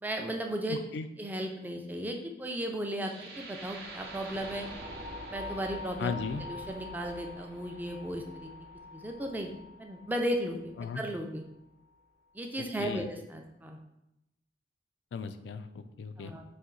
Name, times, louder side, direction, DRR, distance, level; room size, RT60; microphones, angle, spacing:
voice 1, 0.0-0.8 1.2-4.7 5.3-6.1 6.5-8.5 8.9-9.5 9.8-11.4 12.3-13.8 16.2-16.4, right 1 dB, 10° right, 3 dB, 0.4 m, -35 dB
voice 2, 0.7-1.1 6.0-6.5 10.8-11.0 12.6-13.1 15.1-16.3, left 5 dB, 85° left, 10 dB, 0.3 m, -36 dB
sound 1, 3.0-11.0, left 1 dB, 70° right, 0.7 m, -44 dB
4.2 x 2.7 x 3.8 m, 0.87 s
head